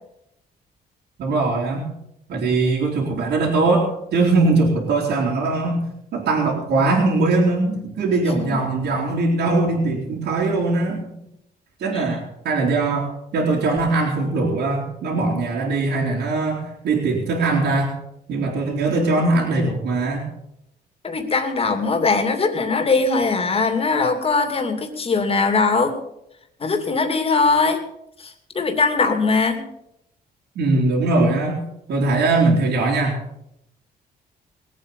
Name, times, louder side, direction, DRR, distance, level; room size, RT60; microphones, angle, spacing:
voice 1, 1.2-1.9 2.3-5.8 6.1-11.1 11.8-17.9 18.3-20.3 30.6-31.6 31.9-33.2, right 3 dB, 80° right, -4 dB, 3.5 m, -21 dB
voice 2, 21.0-26.0 26.6-27.8 28.2-29.6, left 4 dB, 35° left, 6 dB, 2.7 m, -20 dB
20.0 x 8.5 x 7.0 m, 0.79 s
cardioid pair, 110°, 17 cm